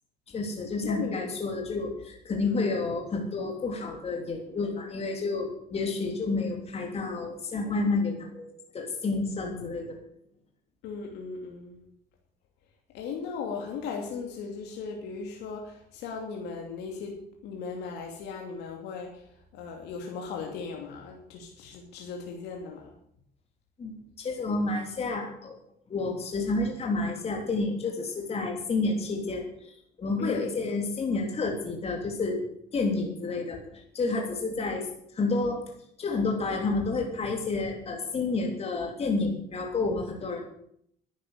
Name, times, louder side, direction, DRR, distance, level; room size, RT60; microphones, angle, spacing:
voice 1, 0.3-10.0 23.8-25.6 25.9-32.4 32.7-34.9 35.1-35.6 36.0-40.4, left 3 dB, 35° left, 1 dB, 3.4 m, -30 dB
voice 2, 0.8-1.4 2.4-2.7 10.8-11.8 12.9-17.1 17.4-19.2 19.5-22.9 30.2-30.5, left 5 dB, 85° left, 1 dB, 2.8 m, -37 dB
11.0 x 9.9 x 8.2 m, 0.70 s
cardioid pair, 110°, 17 cm